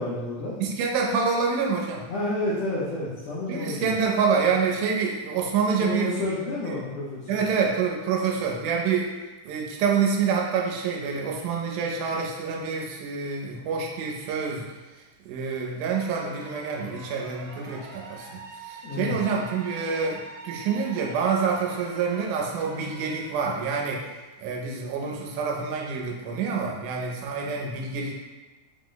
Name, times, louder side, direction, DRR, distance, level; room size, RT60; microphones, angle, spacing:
voice 1, 0.0-0.6 2.1-3.9 5.8-7.4 18.8-19.1, left 2 dB, 70° left, -9 dB, 1.8 m, -30 dB
voice 2, 0.6-2.1 3.5-6.1 6.6-6.7 7.3-9.1 9.5-14.6 15.3-24.0 24.4-28.1, right 5 dB, 90° right, -1 dB, 2.0 m, -27 dB
sound 1, 15.9-23.3, right 3 dB, 70° right, 1.6 m, -44 dB
5.0 x 2.0 x 3.8 m, 1.2 s
omnidirectional pair, 3.4 m